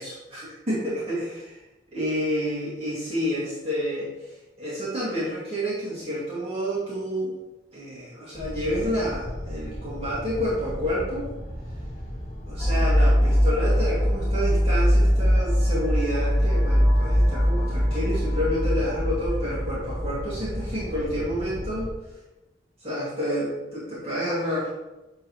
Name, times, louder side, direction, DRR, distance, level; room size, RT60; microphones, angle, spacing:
voice 1, 0.0-1.6 1.9-4.1 4.6-7.3 7.7-11.3 12.5-21.9 22.8-24.7, equal, 35° right, -9 dB, 2.3 m, -29 dB
sound 1, 8.3-21.9, equal, 40° left, 1.5 m, -36 dB
sound 2, 12.6-21.2, equal, 5° left, 0.6 m, -22 dB
9.6 x 3.9 x 3.1 m, 1.0 s
head